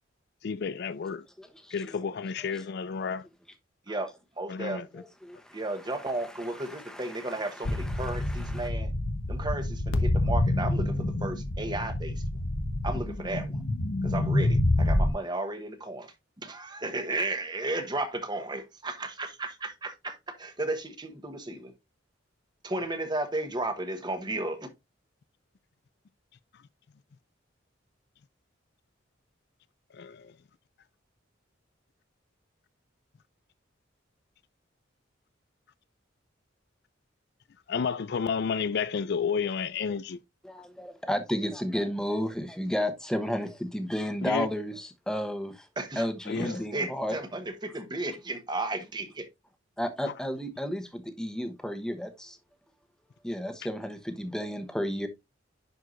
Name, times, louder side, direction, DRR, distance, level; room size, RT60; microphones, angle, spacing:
voice 1, 0.4-1.2 1.7-3.3 4.5-4.9 29.9-30.3 37.7-40.2 44.2-44.5 46.3-46.6 50.1-50.2, left 6 dB, 55° left, 0.4 m, -31 dB
voice 2, 1.4-1.7 2.0-2.1 3.0-3.1 4.9-8.7 40.4-45.7 46.0-47.2 49.8-52.4 53.2-55.1, equal, 5° left, 1.0 m, -33 dB
voice 3, 4.4-4.8 5.5-8.9 9.3-12.1 12.8-13.6 14.0-21.7 22.6-24.7 45.8-46.1 46.3-49.3, right 2 dB, 20° right, 1.1 m, -34 dB
sound 1, 7.7-15.1, left 1 dB, 80° left, 1.0 m, -27 dB
10.5 x 4.7 x 2.5 m
head